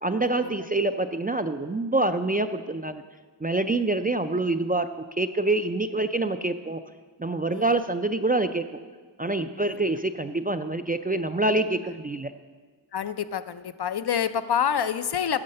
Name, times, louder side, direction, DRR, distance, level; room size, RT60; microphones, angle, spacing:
voice 1, 0.0-3.0 3.4-4.9 5.2-6.8 7.2-8.6 9.2-12.3, right 2 dB, 20° right, 8 dB, 0.3 m, -26 dB
voice 2, 12.9-15.4, left 8 dB, 60° left, 12 dB, 0.5 m, -27 dB
9.5 x 6.3 x 6.6 m, 1.4 s
wide cardioid pair, 50°, 45 cm